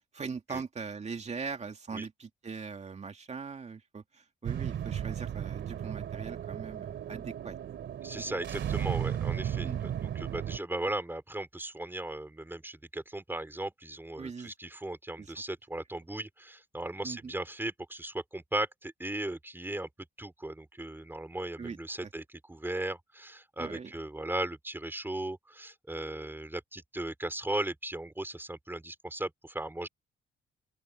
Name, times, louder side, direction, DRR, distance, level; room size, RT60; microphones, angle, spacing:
voice 1, 0.1-7.6 9.6-9.8 14.2-14.5 15.2-15.3 17.0-17.3 21.6-21.8 23.6-23.9, right 5 dB, 35° right, 2.4 m, -40 dB
sound 1, 4.4-10.6, right 9 dB, 65° right, 2.6 m, -35 dB
voice 2, 8.0-19.9 20.2-29.9, right 1 dB, 10° right, 4.2 m, -37 dB
open air
cardioid pair, 90°, 20 cm